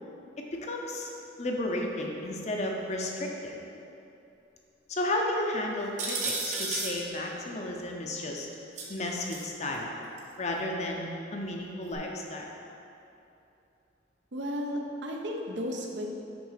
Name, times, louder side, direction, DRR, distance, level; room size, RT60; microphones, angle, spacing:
voice 1, 0.4-1.1 1.4-3.6 4.9-8.5 8.9-9.9 10.4-12.5, left 1 dB, 35° left, 0 dB, 0.6 m, -33 dB
sound 1, 6.0-7.0 8.8-9.4 10.2-10.3 11.9-12.0, right 3 dB, 40° right, 0.9 m, -33 dB
voice 2, 14.3-16.1, equal, 70° right, 1 dB, 0.7 m, -34 dB
6.1 x 3.9 x 5.7 m, 2.8 s
head